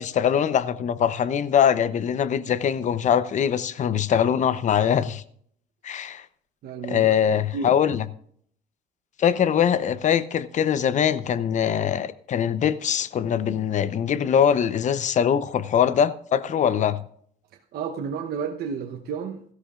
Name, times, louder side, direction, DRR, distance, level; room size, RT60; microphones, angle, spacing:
voice 1, 0.0-5.2 5.8-6.2 6.8-8.1 9.2-17.0, left 8 dB, 45° left, 0.8 m, -22 dB
voice 2, 6.6-7.1 7.5-7.7 17.7-19.4, right 6 dB, 65° right, 1.0 m, -31 dB
17.0 x 13.5 x 2.5 m
cardioid pair, 110°, 17 cm